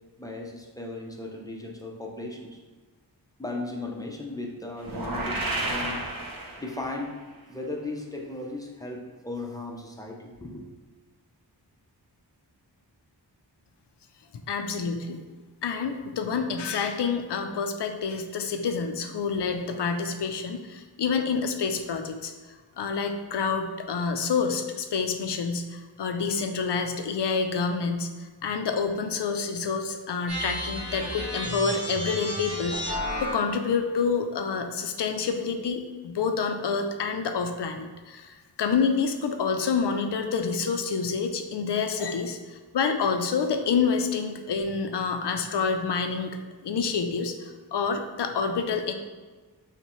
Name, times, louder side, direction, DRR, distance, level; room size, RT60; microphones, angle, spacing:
voice 1, 0.2-2.6 3.4-6.0 6.6-7.1 7.5-10.7, left 2 dB, 10° left, 0 dB, 0.6 m, -36 dB
sound 1, 4.8-7.0, right 2 dB, 55° right, 0.8 m, -31 dB
voice 2, 14.5-15.2 15.6-22.3 22.8-48.9, left 5 dB, 75° left, 6 dB, 0.5 m, -28 dB
sound 2, 30.3-33.6, equal, 35° right, 1.3 m, -32 dB
5.4 x 2.2 x 3.0 m, 1.3 s
wide cardioid pair, 65°, 42 cm